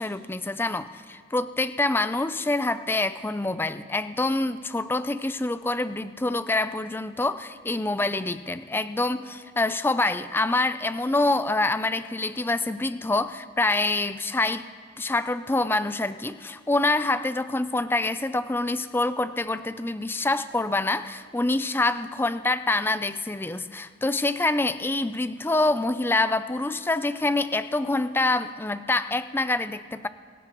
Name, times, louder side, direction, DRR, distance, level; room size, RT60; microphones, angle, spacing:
voice 1, 0.0-14.7 15.0-30.1, left 2 dB, 10° left, 12 dB, 0.4 m, -26 dB
25.0 x 15.0 x 3.0 m, 2.2 s
head